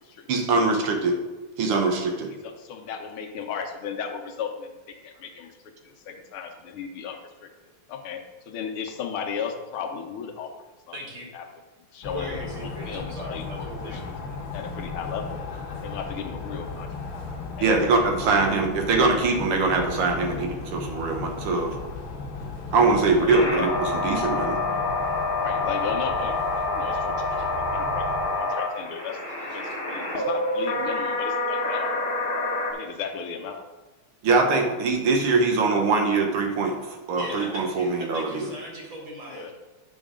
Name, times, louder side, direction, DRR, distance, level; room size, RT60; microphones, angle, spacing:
voice 1, 0.3-1.2 1.6-2.3 17.6-21.8 22.7-24.6 34.2-38.5, right 3 dB, 85° right, 3 dB, 2.0 m, -23 dB
voice 2, 2.3-5.6 5.8-10.7 11.3-11.5 11.9-14.1 14.5-15.4 15.8-16.9 17.6-17.8 23.2-23.6 25.4-26.4 26.7-28.1 28.4-29.2 29.5-32.0 32.7-33.7 39.3-39.5, left 6 dB, 80° left, 4 dB, 1.7 m, -35 dB
voice 3, 10.9-11.3 12.1-14.0 29.5-29.6 37.2-39.5, equal, 60° right, -2 dB, 2.5 m, -38 dB
sound 1, 12.0-28.4, left 4 dB, 55° left, 1.3 m, -36 dB
sound 2, 23.3-32.7, left 2 dB, 35° left, 0.9 m, -27 dB
8.6 x 6.3 x 3.7 m, 1.2 s
omnidirectional pair, 2.4 m